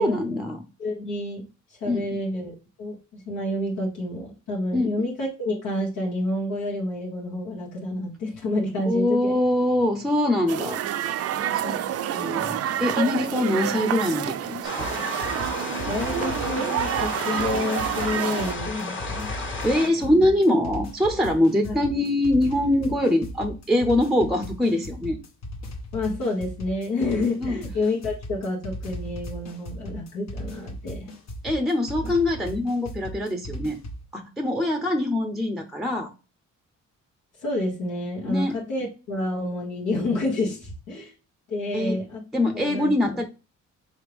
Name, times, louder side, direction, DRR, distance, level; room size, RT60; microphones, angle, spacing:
voice 1, 0.0-0.6 1.9-2.2 4.7-5.0 8.9-10.8 11.5-14.9 19.6-25.2 27.4-27.6 31.4-33.8 34.1-36.1 38.2-38.5 41.7-42.0 42.3-43.2, left 1 dB, ahead, 6 dB, 0.5 m, -23 dB
voice 2, 0.8-9.4 15.9-19.3 21.6-21.8 25.9-31.1 37.4-41.1 41.5-42.2 42.5-43.2, left 2 dB, 85° left, -3 dB, 1.4 m, -29 dB
sound 1, 10.5-18.5, right 11 dB, 55° right, 0.4 m, -28 dB
sound 2, 14.6-19.9, left 3 dB, 40° left, 1.5 m, -33 dB
sound 3, 14.8-34.0, equal, 65° left, 1.3 m, -37 dB
4.6 x 3.3 x 3.4 m, 0.32 s
cardioid pair, 90°, 30 cm